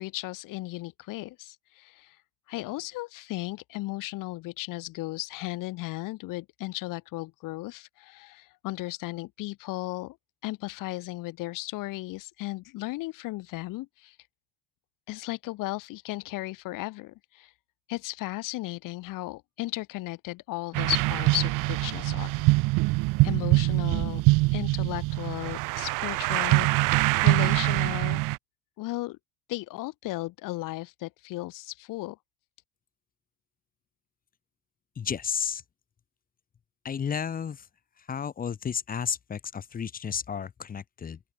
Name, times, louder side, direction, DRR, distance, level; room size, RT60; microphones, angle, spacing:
voice 1, 0.0-2.2 2.5-10.2 10.4-14.1 15.1-17.5 17.9-22.3 23.2-24.2 24.5-28.2 28.8-29.2 29.5-32.2, left 19 dB, 60° left, 5.0 m, -35 dB
sound 1, 20.7-28.4, right 22 dB, 60° right, 1.1 m, -24 dB
voice 2, 35.0-35.6 36.8-37.7 38.1-41.2, left 7 dB, 25° left, 1.4 m, -32 dB
open air
cardioid pair, 140°, 36 cm